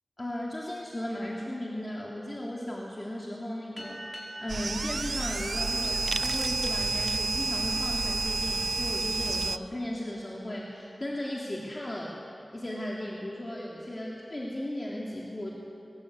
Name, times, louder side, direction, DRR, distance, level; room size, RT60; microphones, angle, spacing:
voice 1, 0.2-12.2 12.5-15.5, left 1 dB, 35° left, -4 dB, 3.4 m, -36 dB
sound 1, 3.8-6.7, equal, 15° left, 5.1 m, -45 dB
sound 2, 4.5-9.6, right 3 dB, 80° right, 0.6 m, -30 dB
28.0 x 19.5 x 8.4 m, 2.9 s
wide cardioid pair, 70°, 0 cm